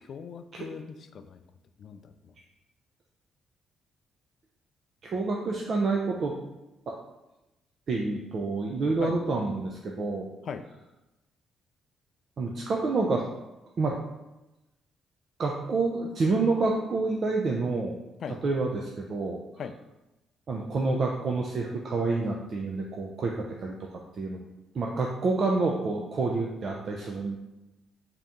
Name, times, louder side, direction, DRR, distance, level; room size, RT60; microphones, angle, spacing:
voice 1, 0.0-1.4 1.8-2.3 9.0-9.2 10.4-10.7 18.2-18.4 19.6-19.8, left 6 dB, 60° left, 9 dB, 0.3 m, -39 dB
voice 2, 5.0-6.3 6.9-7.0 7.9-10.3 12.4-13.2 13.8-14.0 15.4-18.0 18.4-19.4 20.5-23.9 24.2-24.4 24.7-27.4, right 3 dB, 50° right, 0 dB, 0.5 m, -28 dB
3.8 x 2.8 x 3.5 m, 0.99 s
cardioid pair, 90°, 0 cm